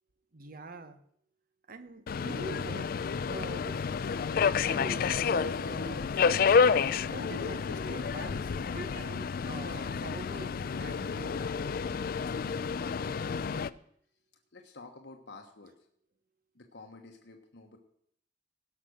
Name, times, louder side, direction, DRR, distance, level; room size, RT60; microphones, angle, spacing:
voice 1, 0.3-1.0 1.7-2.9 3.3-3.8 4.7-6.1 6.9-11.5, right 2 dB, 50° right, 10 dB, 1.0 m, -44 dB
Subway metro underground, 2.1-13.7, left 6 dB, 55° left, 0.4 m, -29 dB
voice 2, 14.5-15.9 16.5-17.8, left 3 dB, 70° left, 3 dB, 1.2 m, -50 dB
17.0 x 5.9 x 6.3 m, 0.67 s
head